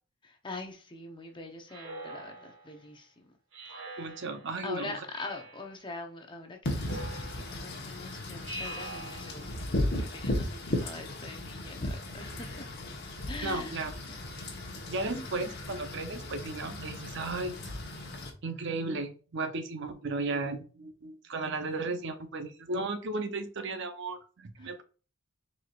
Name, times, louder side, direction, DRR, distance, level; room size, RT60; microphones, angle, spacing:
voice 1, 0.2-3.4 3.7-4.0 4.6-12.7 13.3-13.8 14.1-14.2 15.1-15.6 24.6-24.8, left 3 dB, 25° left, 0.8 m, -44 dB
Speech synthesizer, 1.7-2.8 3.5-4.5 5.1-5.8 6.8-7.7 8.4-9.6, right 1 dB, 85° right, 2.2 m, -44 dB
voice 2, 4.0-4.9 13.4-13.9 14.9-18.0 18.4-24.8, right 3 dB, 60° right, 0.7 m, -35 dB
Wind / Rain, 6.7-18.3, left 1 dB, 50° left, 1.1 m, -36 dB
4.7 x 4.1 x 2.4 m
head